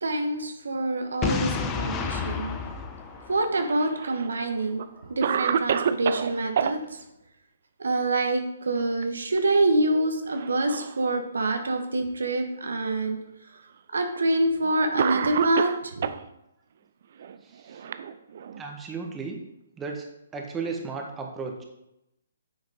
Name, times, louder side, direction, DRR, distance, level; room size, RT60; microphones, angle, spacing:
voice 1, 0.0-2.7 3.3-7.0 7.8-13.2 13.9-16.1, right 2 dB, 70° right, 5 dB, 1.3 m, -26 dB
Boom, 1.2-4.1, left 6 dB, 20° left, 0.8 m, -30 dB
Cough, 3.4-4.3 4.8-4.9 5.2-6.7 8.6-9.0 9.4-9.5 10.3-11.0 11.8-11.9 12.9-13.0 14.2-14.3 15.0-16.2 17.2-18.6, right 7 dB, 50° right, 0.5 m, -28 dB
voice 2, 17.5-17.8 18.6-19.4 19.8-20.0 20.3-21.6, right 4 dB, 15° right, 1 dB, 1.4 m, -34 dB
9.4 x 7.3 x 3.7 m, 0.87 s
figure-of-eight pair, 130°, 0 cm